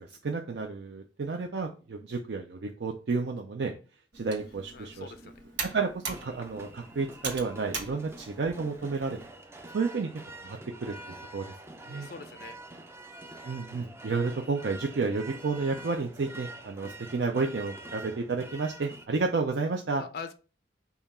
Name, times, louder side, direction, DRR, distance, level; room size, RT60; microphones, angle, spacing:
voice 1, 0.0-3.7 4.1-5.1 5.6-9.2 9.7-10.1 10.4-10.9 11.3-11.5 11.9-12.1 13.4-20.0, right 4 dB, 65° right, 3 dB, 0.5 m, -31 dB
Computer keyboard, 4.1-9.3, right 4 dB, 90° right, 1.4 m, -41 dB
voice 2, 4.7-5.3 11.8-12.6 20.0-20.3, left 5 dB, 60° left, 9 dB, 0.4 m, -42 dB
sound 1, 6.1-19.1, right 2 dB, 15° right, 0.4 m, -46 dB
5.5 x 2.4 x 4.1 m, 0.35 s
head